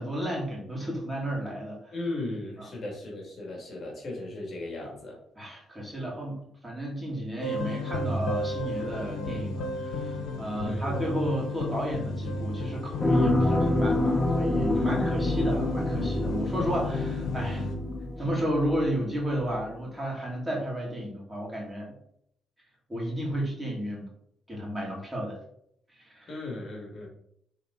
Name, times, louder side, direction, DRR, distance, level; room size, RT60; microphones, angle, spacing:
voice 1, 0.0-1.8 2.6-2.7 5.4-17.7 18.2-21.9 22.9-24.1 24.5-25.4 26.0-26.3, equal, 10° right, -4 dB, 2.8 m, -32 dB
voice 2, 1.9-5.2 10.6-11.0 14.7-15.3 26.3-27.1, left 2 dB, 50° left, -1 dB, 2.7 m, -37 dB
sound 1, 7.4-17.8, left 2 dB, 85° left, 1.1 m, -33 dB
sound 2, 13.0-19.1 19.4-19.5, left 1 dB, 15° left, 1.1 m, -27 dB
6.7 x 4.1 x 4.2 m, 0.71 s
cardioid pair, 90°, 0 cm